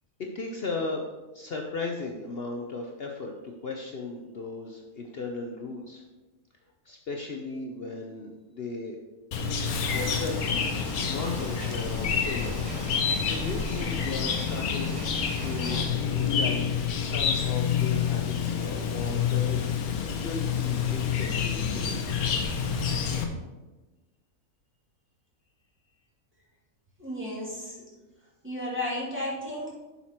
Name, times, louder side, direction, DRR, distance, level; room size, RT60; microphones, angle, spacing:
voice 1, 0.3-1.0 1.3-6.0 6.8-9.0 9.9-10.6 11.0-12.7 13.2-15.0 15.4-15.8 16.1-19.6 20.0-22.3, left 3 dB, 50° left, 1 dB, 0.8 m, -36 dB
Chirp tweet, 9.3-23.2, left 7 dB, 70° left, 1.3 m, -28 dB
sound 1, 9.9-15.8, right 1 dB, 60° right, 1.7 m, -41 dB
voice 2, 27.0-27.8 28.4-29.7, left 1 dB, 5° right, -6 dB, 2.4 m, -33 dB
7.3 x 5.8 x 4.4 m, 1.2 s
omnidirectional pair, 1.6 m